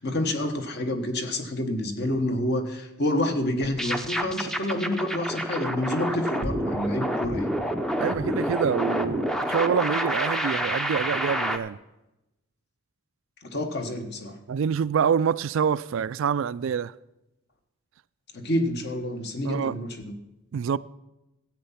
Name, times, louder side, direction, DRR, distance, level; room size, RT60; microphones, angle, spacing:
voice 1, 0.0-7.5 13.4-14.4 18.3-20.1, left 1 dB, 50° left, 1.1 m, -28 dB
sound 1, 3.6-11.6, equal, ahead, 0.5 m, -28 dB
voice 2, 8.0-11.8 14.5-16.9 19.4-19.7 20.5-20.8, right 7 dB, 60° right, 0.3 m, -26 dB
13.5 x 8.2 x 5.7 m
head